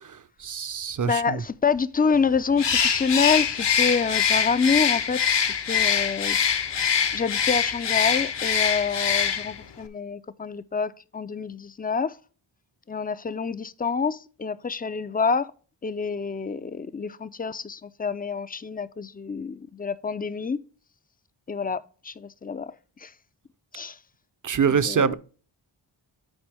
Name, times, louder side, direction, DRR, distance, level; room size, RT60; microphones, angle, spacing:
voice 1, 0.0-1.4 24.4-25.1, right 6 dB, 40° right, 0.6 m, -25 dB
voice 2, 1.1-6.4 7.1-12.2 12.9-15.5 15.8-20.6 21.5-23.1 23.7-24.0 24.5-25.1, left 5 dB, 20° left, 0.3 m, -27 dB
Bird, 2.6-9.6, left 7 dB, 60° left, 0.8 m, -24 dB
8.9 x 4.5 x 3.4 m
cardioid pair, 55°, 49 cm